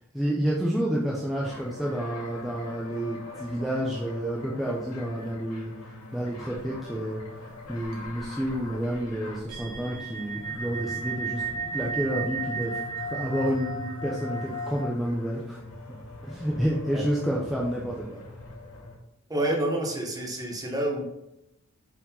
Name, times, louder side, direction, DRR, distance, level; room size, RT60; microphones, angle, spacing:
voice 1, 0.1-5.7 6.1-7.2 7.7-11.4 11.7-12.8 13.1-15.6 16.2-18.2, equal, ahead, -4 dB, 0.9 m, -29 dB
sound 1, 1.3-19.0, left 2 dB, 90° left, 2.5 m, -42 dB
sound 2, 6.5-7.0 7.2-7.3 7.6-14.8, right 4 dB, 70° right, 1.7 m, -35 dB
voice 2, 19.3-21.1, right 1 dB, 15° right, 0 dB, 1.5 m, -28 dB
7.4 x 5.4 x 4.0 m, 0.86 s
head